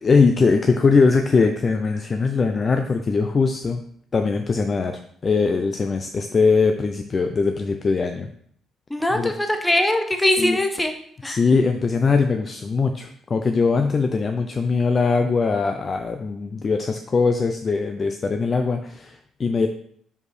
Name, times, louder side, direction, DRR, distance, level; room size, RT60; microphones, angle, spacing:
voice 1, 0.0-3.8 4.1-8.3 9.1-9.3 10.4-10.6 11.2-19.7, left 4 dB, 30° left, 6 dB, 0.4 m, -21 dB
voice 2, 8.9-10.9 11.2-11.4, left 1 dB, 5° left, 5 dB, 0.7 m, -21 dB
5.3 x 4.7 x 4.1 m, 0.63 s
cardioid pair, 140°, 0 cm